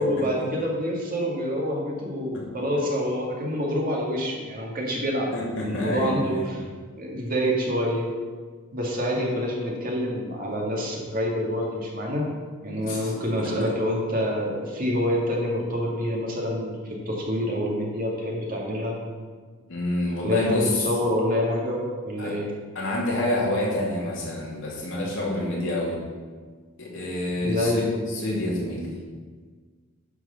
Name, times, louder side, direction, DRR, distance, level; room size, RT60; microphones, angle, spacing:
voice 1, 0.0-5.3 5.6-6.6 7.0-8.1 8.7-12.3 12.6-19.0 20.2-22.5 27.4-27.8, equal, 40° right, -2 dB, 1.9 m, -27 dB
voice 2, 5.3-6.4 12.7-13.1 19.7-20.7 22.2-22.3 22.7-26.0 26.8-27.8 28.1-28.8, left 1 dB, 60° left, -4 dB, 2.7 m, -27 dB
9.9 x 4.6 x 6.7 m, 1.5 s
head